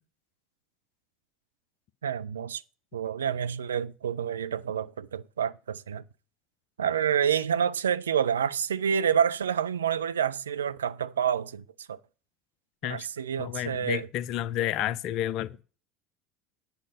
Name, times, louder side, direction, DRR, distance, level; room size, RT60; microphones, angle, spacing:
voice 1, 2.0-2.6 2.9-6.0 6.8-12.0 12.8-14.1, right 8 dB, 75° right, 0.4 m, -28 dB
voice 2, 13.4-15.6, left 12 dB, 50° left, 0.6 m, -30 dB
9.2 x 5.1 x 7.5 m
figure-of-eight pair, 70°, 0 cm